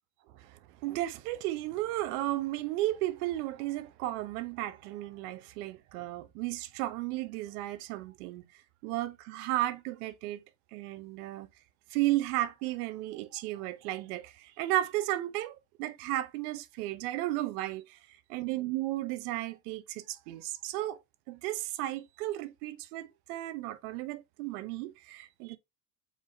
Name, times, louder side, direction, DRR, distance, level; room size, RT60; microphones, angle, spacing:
voice 1, 0.8-8.4 8.8-10.4 10.7-11.5 11.9-17.8 18.3-21.0 21.3-25.6, right 15 dB, 85° right, 0.8 m, -34 dB
4.7 x 4.0 x 2.5 m
cardioid pair, 135°, 44 cm